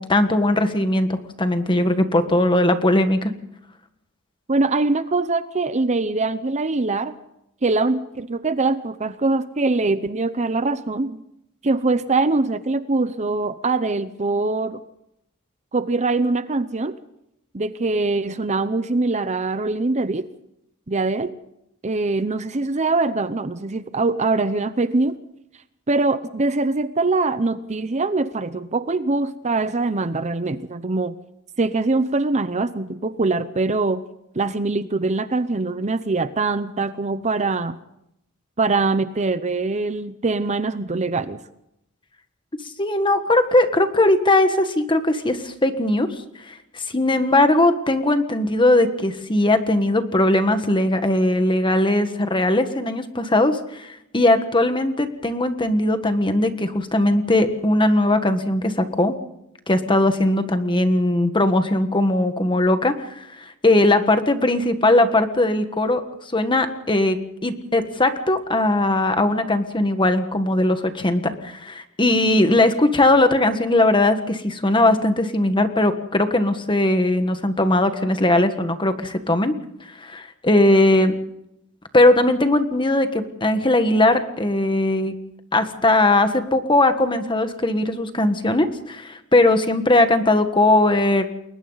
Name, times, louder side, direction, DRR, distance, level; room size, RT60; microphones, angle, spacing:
voice 1, 0.0-3.3 42.8-46.1 46.5-59.1 59.7-63.2 63.6-66.0 66.3-79.5 80.0-81.1 81.9-85.1 85.5-91.3, left 1 dB, 20° left, 8 dB, 1.5 m, -19 dB
voice 2, 4.5-7.1 7.6-11.2 11.6-14.8 15.7-17.0 17.5-20.3 20.9-21.3 21.8-25.2 25.9-31.1 31.6-34.1 34.3-37.8 38.6-41.4, right 3 dB, 30° right, 12 dB, 0.7 m, -23 dB
29.5 x 21.5 x 4.0 m, 0.81 s
head